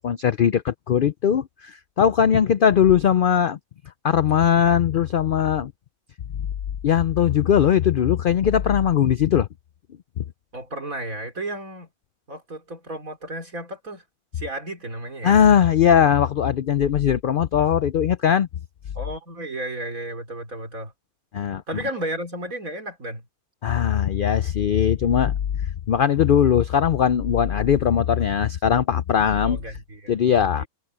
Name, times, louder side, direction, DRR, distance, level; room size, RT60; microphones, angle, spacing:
voice 1, 0.0-3.6 4.0-5.7 6.8-9.5 10.2-10.3 15.2-18.5 21.3-21.6 23.6-25.3 25.9-29.6 30.1-30.6, left 8 dB, 70° left, 0.5 m, -19 dB
voice 2, 10.5-11.9 12.3-14.0 14.3-15.4 18.9-20.9 21.7-23.3 29.4-30.7, right 1 dB, 70° right, 4.6 m, -33 dB
omnidirectional pair, 1.5 m